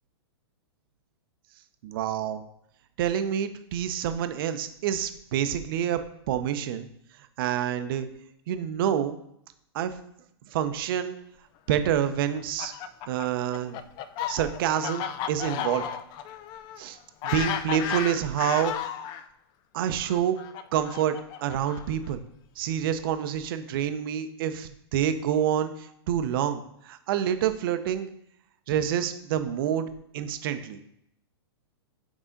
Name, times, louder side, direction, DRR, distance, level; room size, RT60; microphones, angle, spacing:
voice 1, 1.8-2.4 3.0-6.0 6.3-6.9 7.4-8.1 8.5-9.2 9.7-9.9 10.5-11.2 11.7-12.7 13.1-13.8 14.3-15.8 16.8-17.0 17.2-18.7 19.7-20.4 20.7-22.2 22.6-28.1 28.7-29.8 30.1-30.8, right 9 dB, 55° right, 10 dB, 0.7 m, -27 dB
Fowl, 12.3-19.2 20.0-22.1, left 9 dB, 30° left, 0.4 m, -34 dB
6.2 x 4.0 x 3.9 m, 0.75 s
hypercardioid pair, 125°, 14 cm